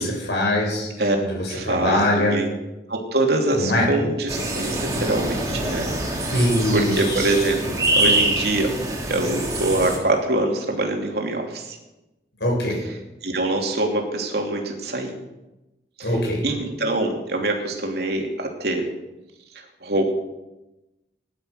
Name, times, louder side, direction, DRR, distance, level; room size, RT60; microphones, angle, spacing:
voice 1, 0.0-0.9 1.2-2.4 3.6-3.9 6.3-6.9 12.4-12.8 16.0-16.4, left 1 dB, 75° left, -1 dB, 7.4 m, -22 dB
voice 2, 1.5-2.5 2.9-5.9 6.2-8.8 9.1-11.8 12.7-12.9 13.2-15.1 16.0-16.2 16.4-18.9 19.8-20.2, right 2 dB, 65° right, 2 dB, 2.9 m, -24 dB
sound 1, 4.3-10.0, right 1 dB, 20° right, 2.9 m, -25 dB
18.0 x 11.5 x 6.5 m, 1.0 s
head